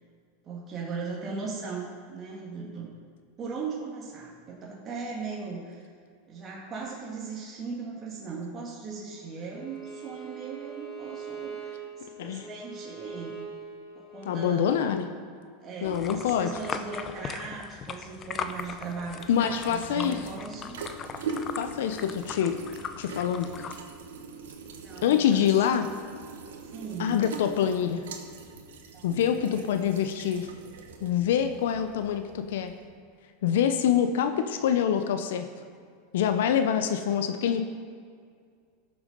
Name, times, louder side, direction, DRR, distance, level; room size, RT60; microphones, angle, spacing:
voice 1, 0.4-2.9 3.4-5.8 6.3-13.4 14.0-14.7 15.6-20.8 24.8-25.5 26.7-27.2 28.9-29.3, right 4 dB, 30° right, -4 dB, 2.2 m, -38 dB
Bowed string instrument, 9.5-14.5, right 7 dB, 15° left, 2.9 m, -42 dB
voice 2, 14.3-15.1 15.8-16.5 19.3-20.2 21.6-22.6 23.0-23.5 25.0-25.9 27.0-28.0 29.0-30.5 31.0-32.7 33.4-35.4 36.1-37.6, left 9 dB, 75° left, 8 dB, 0.6 m, -25 dB
sound 1, 15.8-23.7, left 6 dB, 30° left, 0.7 m, -39 dB
sound 2, 17.8-32.9, right 4 dB, 85° right, 1.3 m, -43 dB
13.5 x 7.0 x 5.3 m, 2.1 s
hypercardioid pair, 115°, 0 cm